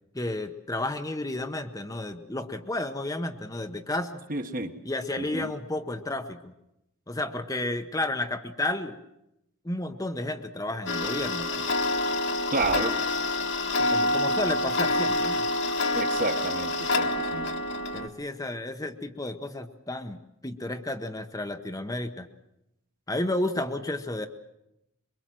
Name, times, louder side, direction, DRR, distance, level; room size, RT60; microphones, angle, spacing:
voice 1, 0.1-4.2 4.8-6.5 7.1-9.0 9.6-11.5 13.9-15.4 17.9-22.3 23.1-24.3, left 2 dB, 15° left, 7 dB, 0.9 m, -32 dB
voice 2, 4.3-4.7 5.2-5.5 12.5-13.0 15.9-17.5, right 2 dB, 40° right, 7 dB, 1.3 m, -30 dB
Tick-tock, 10.9-18.1, left 2 dB, 55° left, 1.6 m, -27 dB
23.0 x 23.0 x 7.6 m, 0.87 s
head